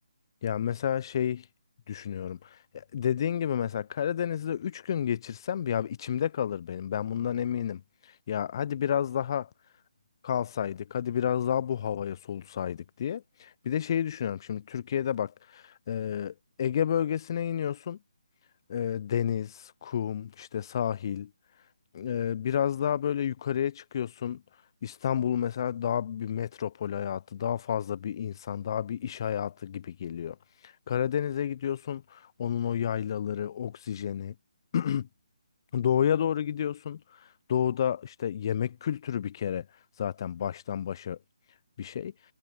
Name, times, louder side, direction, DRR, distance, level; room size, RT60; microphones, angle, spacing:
voice 1, 0.4-1.4 1.9-2.5 2.7-7.8 8.3-9.5 10.2-18.0 18.7-21.3 21.9-24.4 24.8-30.3 30.9-34.3 34.7-35.1 35.7-37.0 37.5-39.7 40.0-41.2 41.8-42.1, left 9 dB, 40° left, 1.0 m, -30 dB
figure-of-eight pair, 145°, 4 cm